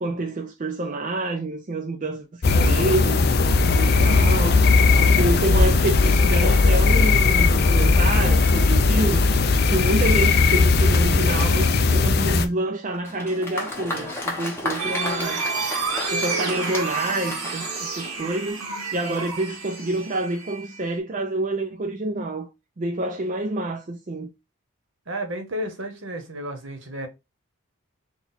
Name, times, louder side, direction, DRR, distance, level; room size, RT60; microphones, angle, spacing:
voice 1, 0.0-3.2 3.6-4.7 5.0-9.3 9.7-15.5 15.9-18.6 18.9-22.5 22.8-24.3, right 2 dB, 35° right, 0.4 m, -28 dB
sound 1, 2.4-12.5, left 3 dB, 45° left, 0.5 m, -18 dB
Applause, 12.9-18.5, left 2 dB, 10° left, 0.9 m, -33 dB
sound 2, 14.8-21.0, right 4 dB, 85° right, 1.2 m, -30 dB
voice 2, 25.1-27.1, equal, 60° right, 1.1 m, -32 dB
4.0 x 2.4 x 4.0 m
head